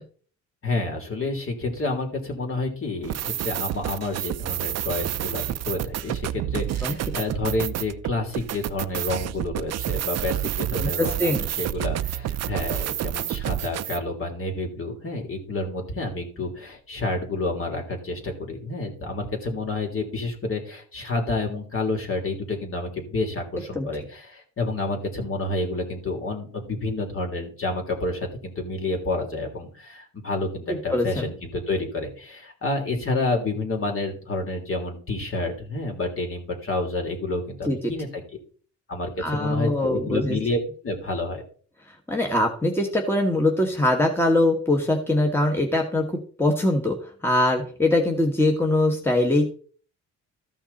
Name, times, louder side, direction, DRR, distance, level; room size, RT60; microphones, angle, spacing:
voice 1, 0.6-38.2 38.9-40.6 40.8-41.4, left 2 dB, 45° left, 2 dB, 3.3 m, -29 dB
sound 1, 3.0-14.0, right 12 dB, 60° right, 0.6 m, -29 dB
voice 2, 10.7-11.5 23.7-23.9 30.7-31.2 37.7-37.8 39.2-40.4 42.1-47.0 47.2-49.5, left 1 dB, 10° left, 2 dB, 1.5 m, -22 dB
14.0 x 5.9 x 4.2 m, 0.43 s
cardioid pair, 90°, 30 cm